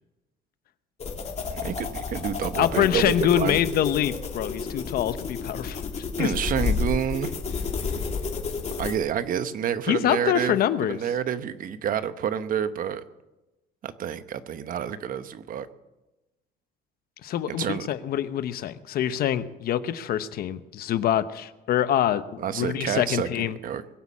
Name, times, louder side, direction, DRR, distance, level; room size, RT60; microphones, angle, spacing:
sound 1, 1.0-9.0, left 5 dB, 40° left, 2.8 m, -31 dB
voice 1, 1.5-3.6 6.2-7.3 8.8-10.6 10.9-13.0 13.8-15.7 17.5-17.8 22.4-24.0, right 9 dB, 55° right, 12 dB, 1.0 m, -29 dB
voice 2, 2.6-5.8 6.2-6.3 9.9-11.0 17.2-23.6, left 11 dB, 65° left, 13 dB, 0.9 m, -25 dB
22.0 x 8.3 x 7.4 m, 1.0 s
cardioid pair, 110°, 17 cm